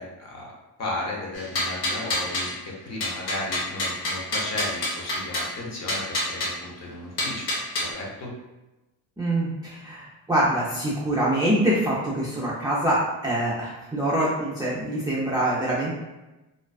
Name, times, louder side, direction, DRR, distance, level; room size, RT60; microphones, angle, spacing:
voice 1, 0.0-7.5 7.8-8.3, left 2 dB, 35° left, -2 dB, 0.7 m, -35 dB
sound 1, 1.3-2.5 3.0-5.5 5.9-6.5 7.2-7.9, left 1 dB, 60° left, 0.9 m, -27 dB
voice 2, 9.2-16.0, right 1 dB, 10° right, -7 dB, 0.4 m, -25 dB
2.4 x 2.2 x 2.3 m, 1.0 s
cardioid pair, 115°, 43 cm